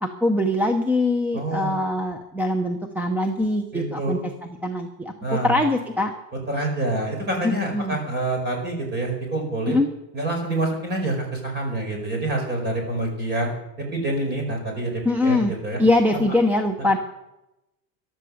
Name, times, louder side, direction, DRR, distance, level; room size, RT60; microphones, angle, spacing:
voice 1, 0.0-4.2 4.6-5.1 5.4-6.1 7.7-8.0 9.7-9.9 15.0-15.5 15.8-17.0, left 2 dB, 5° right, 5 dB, 0.6 m, -22 dB
voice 2, 1.3-1.7 3.7-4.2 5.2-5.6 6.3-9.8 10.1-13.5 13.8-15.8 16.8-17.0, right 2 dB, 25° right, 2 dB, 4.9 m, -27 dB
15.0 x 12.0 x 6.5 m, 0.94 s
cardioid pair, 160°, 41 cm